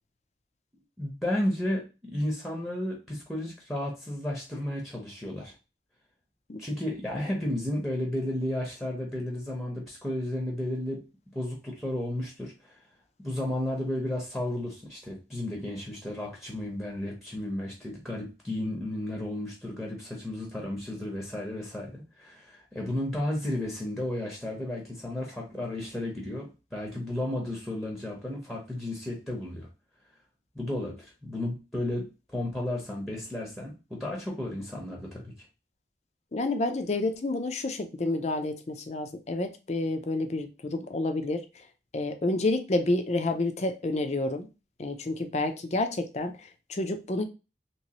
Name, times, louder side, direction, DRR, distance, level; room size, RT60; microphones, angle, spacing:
voice 1, 1.0-5.5 6.6-11.0 11.3-12.8 13.2-29.7 30.5-35.3, left 1 dB, ahead, -1 dB, 0.8 m, -33 dB
voice 2, 36.3-41.4 41.9-44.5 44.8-47.2, left 2 dB, 40° left, 7 dB, 0.5 m, -29 dB
3.0 x 3.0 x 2.9 m, 0.29 s
head